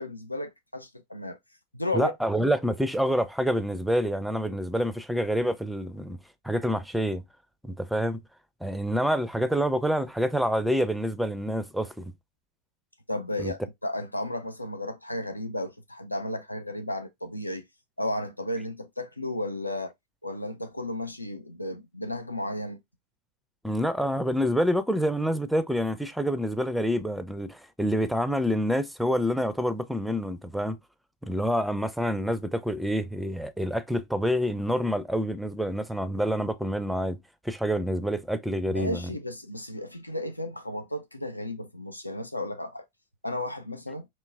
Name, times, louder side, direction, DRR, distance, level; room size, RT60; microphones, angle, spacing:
voice 1, 0.0-1.4 1.7-2.1 13.1-17.6 18.0-19.9 20.2-22.8 38.7-42.8 43.2-44.1, left 1 dB, 85° left, 0.5 m, -33 dB
voice 2, 1.9-6.2 6.4-7.2 7.6-8.2 8.6-12.1 13.4-13.5 23.6-30.8 31.2-37.2 37.4-39.1, equal, ahead, 0.4 m, -27 dB
4.5 x 3.0 x 2.3 m
figure-of-eight pair, 90°, 0 cm